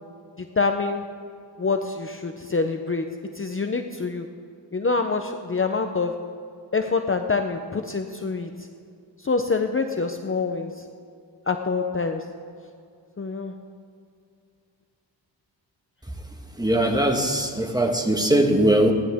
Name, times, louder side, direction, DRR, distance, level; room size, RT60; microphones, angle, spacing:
voice 1, 0.4-1.0 1.6-3.1 3.3-4.3 4.7-6.1 6.7-8.5 9.2-10.8 11.5-12.2 13.2-13.5, left 4 dB, 30° left, 5 dB, 0.8 m, -26 dB
voice 2, 16.6-18.9, right 1 dB, 10° right, 3 dB, 1.5 m, -20 dB
27.5 x 11.0 x 3.6 m, 2.4 s
wide cardioid pair, 100°, 45 cm